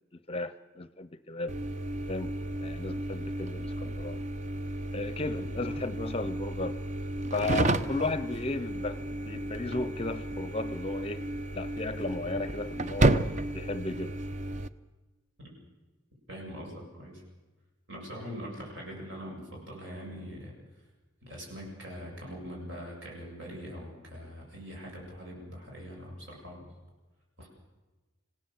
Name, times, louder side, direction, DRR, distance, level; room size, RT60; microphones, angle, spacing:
voice 1, 0.1-1.5 2.1-4.2 4.9-6.8 7.3-11.2 11.5-14.2, left 2 dB, 30° left, 13 dB, 0.6 m, -35 dB
sound 1, 1.5-14.7, right 1 dB, 35° right, 0.7 m, -32 dB
voice 2, 16.3-17.2 17.9-20.5 21.2-26.7 27.4-27.5, equal, 70° right, -2 dB, 7.5 m, -42 dB
27.0 x 16.5 x 7.9 m, 1.2 s
head